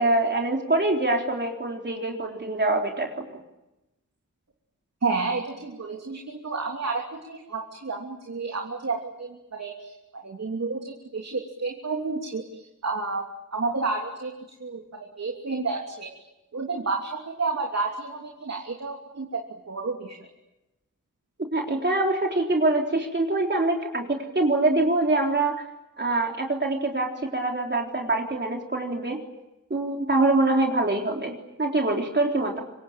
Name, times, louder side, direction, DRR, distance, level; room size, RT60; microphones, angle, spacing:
voice 1, 0.0-3.4 21.5-25.6 26.0-29.2 29.7-32.6, right 2 dB, 35° right, 1 dB, 3.8 m, -24 dB
voice 2, 5.0-13.2 13.5-14.3 14.6-16.2 16.5-19.4 19.7-20.2, right 3 dB, 55° right, 1 dB, 3.1 m, -31 dB
26.0 x 23.5 x 8.9 m, 0.97 s
wide cardioid pair, 90°, 31 cm